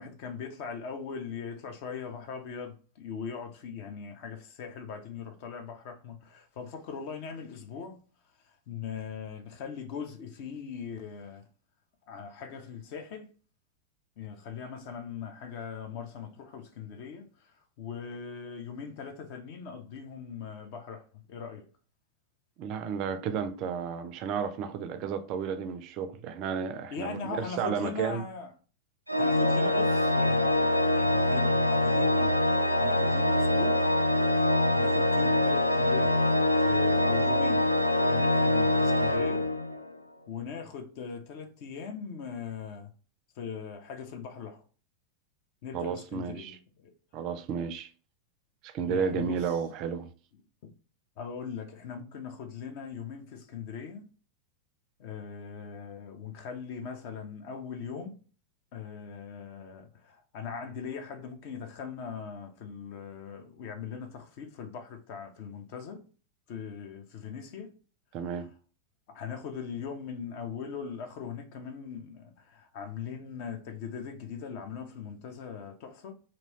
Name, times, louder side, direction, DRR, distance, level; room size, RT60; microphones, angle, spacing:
voice 1, 0.0-8.0 8.4-11.5 12.1-13.3 14.2-21.7 26.9-28.5 29.2-32.4 32.8-33.8 34.3-34.5 34.7-36.3 36.6-37.8 38.1-39.5 40.3-42.9 43.3-44.6 45.6-46.9 48.9-49.6 50.6-50.7 51.2-54.1 55.0-58.2 58.7-66.1 66.5-67.8 68.4-68.5 69.1-76.1, left 6 dB, 45° left, 0.6 m, -40 dB
voice 2, 22.6-28.2 45.7-46.6 47.1-47.9 48.6-50.1 68.1-68.5, right 7 dB, 40° right, 0.4 m, -32 dB
Organ, 29.1-40.0, left 1 dB, 90° left, 0.3 m, -24 dB
3.0 x 2.6 x 2.9 m
figure-of-eight pair, 90°, 0 cm